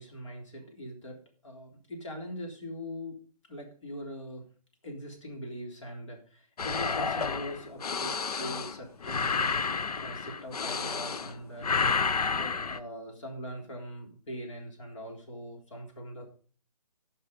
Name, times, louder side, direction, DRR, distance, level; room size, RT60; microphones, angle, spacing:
voice 1, 0.0-3.2 3.5-4.4 4.8-9.6 10.0-11.7 11.9-16.3, equal, 50° left, 2 dB, 3.7 m, -42 dB
sound 1, 6.6-11.3 11.6-12.8, left 5 dB, 75° left, 0.8 m, -30 dB
15.0 x 5.7 x 5.2 m, 0.42 s
hypercardioid pair, 170°, 19 cm